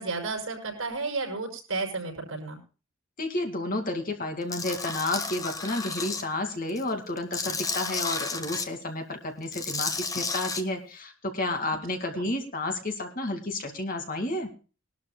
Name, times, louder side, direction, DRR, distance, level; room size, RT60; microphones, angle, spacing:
voice 1, 0.0-2.6 12.0-12.3, right 3 dB, 75° right, 2 dB, 5.8 m, -32 dB
voice 2, 3.2-14.5, left 2 dB, 40° left, 4 dB, 2.3 m, -31 dB
Tools, 4.5-6.2 6.7-8.7 9.4-10.6, left 4 dB, 15° left, 1.0 m, -32 dB
21.5 x 12.5 x 2.3 m, 0.35 s
head